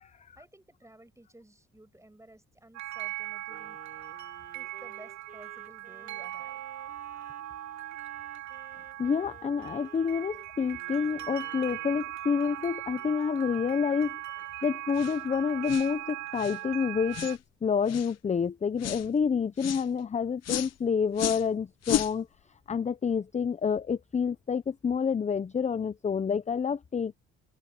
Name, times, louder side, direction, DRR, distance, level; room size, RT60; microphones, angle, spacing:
voice 1, 0.4-3.8 4.5-6.6 7.5-7.6, right 1 dB, 10° right, 8.0 m, -54 dB
sound 1, 2.7-17.4, right 15 dB, 65° right, 2.8 m, -40 dB
Wind instrument woodwind instrument, 3.5-12.1, right 4 dB, 25° right, 7.9 m, -55 dB
voice 2, 9.0-14.2 14.6-22.3 22.7-27.2, left 6 dB, 25° left, 0.5 m, -28 dB
sound 2, 14.9-15.2 15.7-15.9 16.4-16.6 17.1-17.4 17.9-18.1 18.8-19.1 19.6-19.9 20.4-20.7 21.1-21.5 21.8-22.1, left 11 dB, 55° left, 0.8 m, -32 dB
cardioid pair, 90°, 30 cm